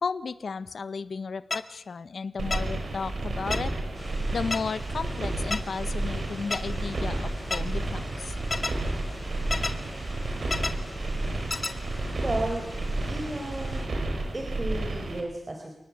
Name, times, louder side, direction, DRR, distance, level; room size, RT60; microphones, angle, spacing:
voice 1, 0.0-3.7 4.3-8.4, left 5 dB, 75° left, 13 dB, 1.2 m, -34 dB
sound 1, 1.5-1.6 2.5-2.6 3.5-3.6 4.5-4.6 5.5-5.6 6.5-6.6 7.5-7.6 8.5-8.7 9.5-9.7 10.5-10.7 11.5-11.7, left 3 dB, 45° left, 1.9 m, -28 dB
sound 2, 2.4-15.2, right 2 dB, 65° right, 5.5 m, -31 dB
sound 3, 3.9-13.9, left 1 dB, 15° left, 5.8 m, -45 dB
voice 2, 12.2-12.6 13.1-13.9 14.3-15.7, right 2 dB, 35° right, 3 dB, 4.6 m, -33 dB
29.0 x 18.5 x 9.8 m, 0.85 s
wide cardioid pair, 100°, 0 cm